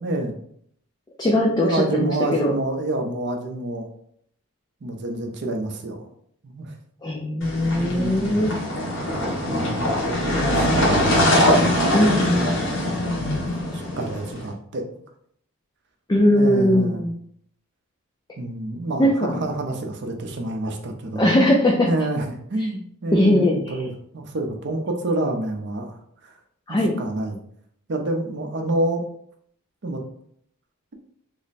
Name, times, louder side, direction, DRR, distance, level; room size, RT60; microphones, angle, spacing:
voice 1, 0.0-0.4 1.6-3.9 4.8-6.1 6.4-6.7 7.7-8.4 9.5-12.1 12.3-13.3 13.7-14.8 16.3-17.0 18.4-21.3 21.8-26.4 26.7-27.4 27.9-29.0 29.8-30.0, right 2 dB, 50° right, 4 dB, 0.6 m, -28 dB
voice 2, 1.2-2.5 7.0-8.5 11.9-12.6 16.1-17.1 19.0-19.4 21.2-21.9 23.1-23.8 26.7-26.9, left 1 dB, 20° left, 0 dB, 0.3 m, -20 dB
sound 1, 7.4-14.4, left 1 dB, 55° left, 1.1 m, -22 dB
3.1 x 2.1 x 4.0 m, 0.66 s
head